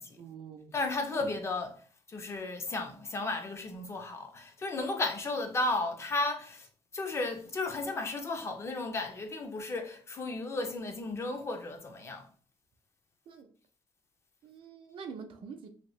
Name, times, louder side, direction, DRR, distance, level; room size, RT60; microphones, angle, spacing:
voice 1, 0.2-0.7 13.3-13.5 14.4-15.7, right 6 dB, 60° right, 0.5 m, -45 dB
voice 2, 0.7-1.8 2.1-6.7 6.9-12.2, left 2 dB, 25° left, 0.4 m, -34 dB
2.8 x 2.6 x 3.1 m
cardioid pair, 175°, 10 cm